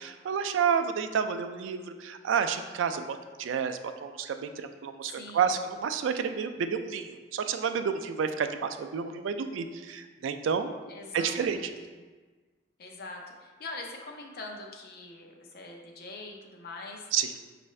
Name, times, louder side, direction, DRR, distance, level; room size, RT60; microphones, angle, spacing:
voice 1, 0.0-10.7 11.1-11.7 17.1-17.4, right 7 dB, 85° right, 8 dB, 0.3 m, -30 dB
voice 2, 5.0-5.6 10.9-11.7 12.8-17.1, left 2 dB, 55° left, 0 dB, 0.6 m, -43 dB
5.4 x 2.5 x 3.2 m, 1.3 s
head